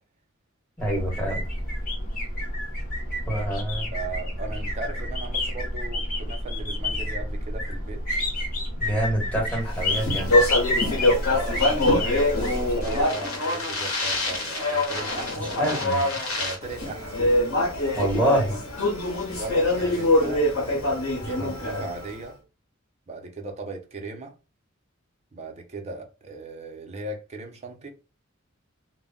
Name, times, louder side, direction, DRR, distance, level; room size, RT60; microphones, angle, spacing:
sound 1, 0.8-13.0, left 1 dB, 45° left, 1.0 m, -29 dB
voice 1, 0.8-1.4 3.3-3.9 8.8-10.4 15.6-16.0 17.9-18.6 21.2-21.5 21.8-21.9, equal, 5° left, 1.2 m, -26 dB
voice 2, 3.9-8.0 10.8-15.8 16.4-17.2 19.3-22.4 23.1-24.3 25.3-27.9, right 3 dB, 30° right, 0.5 m, -37 dB
Speech, 9.7-22.1, left 1 dB, 80° left, 0.9 m, -24 dB
2.2 x 2.1 x 3.5 m
head